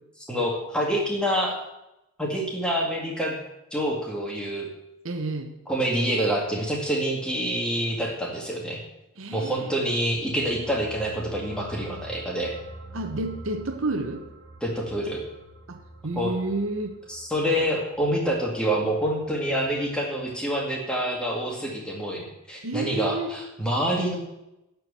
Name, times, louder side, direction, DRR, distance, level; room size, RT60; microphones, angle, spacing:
voice 1, 0.3-1.7 2.2-3.4 3.7-4.7 5.7-8.8 9.3-12.5 14.6-15.2 16.2-16.3 17.1-24.2, equal, 5° left, -1 dB, 2.0 m, -27 dB
voice 2, 5.0-5.5 9.2-9.8 12.9-14.2 15.7-17.0 22.6-23.3, right 2 dB, 70° right, 6 dB, 1.0 m, -30 dB
sound 1, 9.9-20.4 20.7-20.9, right 1 dB, 50° right, 2.5 m, -46 dB
12.0 x 4.7 x 8.5 m, 0.91 s
head